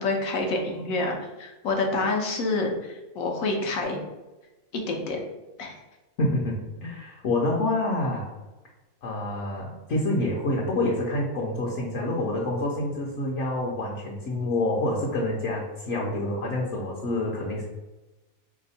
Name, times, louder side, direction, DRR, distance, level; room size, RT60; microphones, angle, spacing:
voice 1, 0.0-4.0 4.7-5.2 5.6-5.7, left 2 dB, 85° left, 2 dB, 1.1 m, -27 dB
voice 2, 6.2-8.3 9.0-17.6, left 1 dB, 65° left, -2 dB, 1.0 m, -27 dB
3.4 x 3.0 x 4.1 m, 1.1 s
omnidirectional pair, 1.4 m